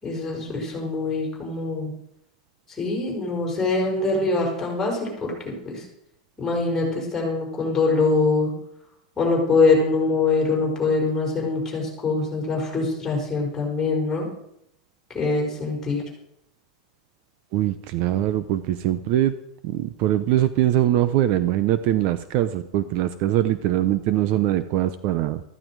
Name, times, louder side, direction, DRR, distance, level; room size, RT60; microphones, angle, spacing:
voice 1, 0.0-1.9 2.8-5.3 5.6-5.8 6.4-8.5 9.2-14.3 15.1-16.0, left 3 dB, 10° left, -2 dB, 5.3 m, -23 dB
voice 2, 17.5-19.3 19.6-25.4, right 13 dB, 40° right, 12 dB, 0.7 m, -22 dB
14.5 x 14.0 x 4.7 m, 0.78 s
supercardioid pair, 155°, 4 cm